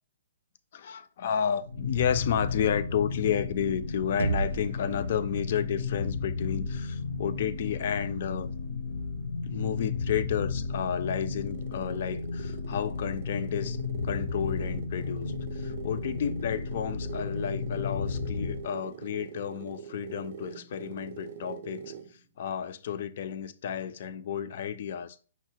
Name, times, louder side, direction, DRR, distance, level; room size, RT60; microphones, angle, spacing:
voice 1, 0.7-8.5 9.4-13.8 14.0-21.9 22.4-25.2, left 8 dB, 35° left, 0.3 m, -31 dB
sound 1, 1.6-18.7, left 4 dB, 70° left, 0.7 m, -34 dB
sound 2, 4.2-8.1, right 4 dB, 85° right, 0.5 m, -36 dB
sound 3, 10.4-22.2, right 7 dB, 35° right, 0.5 m, -44 dB
5.5 x 2.0 x 4.5 m
hypercardioid pair, 180°, 0 cm